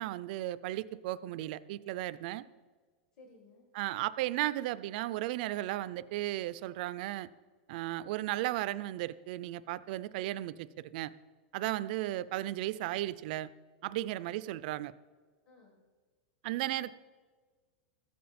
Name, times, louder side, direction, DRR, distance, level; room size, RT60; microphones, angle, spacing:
voice 1, 0.0-2.4 3.7-7.3 7.7-11.1 11.5-13.5 13.8-14.9 16.4-16.9, right 15 dB, 45° right, 16 dB, 0.4 m, -35 dB
voice 2, 3.1-3.7 14.2-14.3 15.4-15.8, left 3 dB, 50° left, 0 dB, 1.6 m, -58 dB
14.0 x 7.6 x 4.2 m, 1.5 s
supercardioid pair, 160°, 6 cm